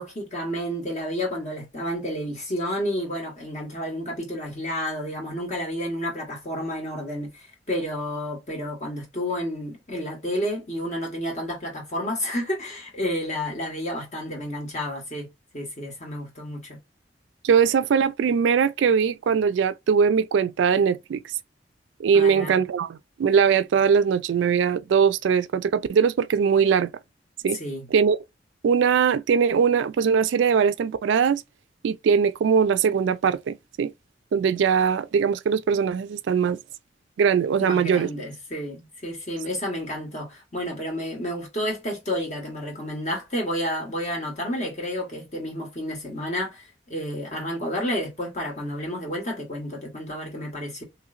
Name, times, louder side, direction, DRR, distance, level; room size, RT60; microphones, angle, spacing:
voice 1, 0.0-15.3 15.5-16.8 22.1-22.6 27.5-27.9 37.6-50.8, equal, 40° left, 1.5 m, -30 dB
voice 2, 17.4-21.2 22.0-26.9 27.4-27.6 27.9-28.2 28.6-31.4 31.8-33.9 34.3-36.6 37.2-38.1, right 6 dB, 80° right, 0.3 m, -21 dB
3.1 x 2.8 x 2.5 m
head